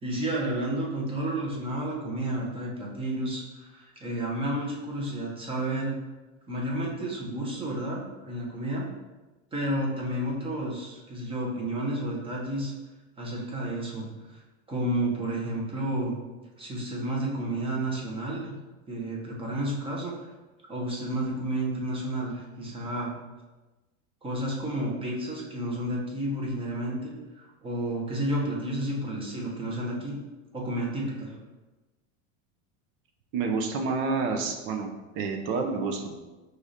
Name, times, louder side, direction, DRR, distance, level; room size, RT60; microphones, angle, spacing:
voice 1, 0.0-6.0 6.5-8.8 9.5-12.7 13.2-14.4 14.7-16.2 16.6-18.5 18.9-20.3 20.7-23.1 24.2-30.2 30.5-31.4, right 1 dB, 15° right, -3 dB, 0.8 m, -31 dB
voice 2, 33.3-34.9 35.1-36.2, right 4 dB, 35° right, 4 dB, 0.4 m, -28 dB
4.8 x 2.5 x 4.1 m, 1.1 s
supercardioid pair, 150°, 40 cm